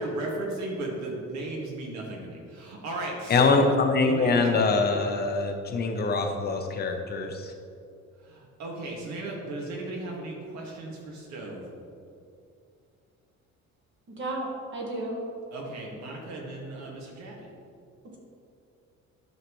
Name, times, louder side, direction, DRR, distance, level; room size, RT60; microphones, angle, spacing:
voice 1, 0.0-3.7 4.0-4.7 8.3-11.7 15.5-17.4, right 2 dB, 70° right, -2 dB, 2.0 m, -35 dB
voice 2, 3.3-7.5, left 3 dB, 35° left, 4 dB, 0.8 m, -24 dB
voice 3, 14.2-15.2, right 2 dB, 40° right, -2 dB, 1.4 m, -33 dB
12.0 x 5.7 x 3.2 m, 2.5 s
cardioid pair, 160°, 29 cm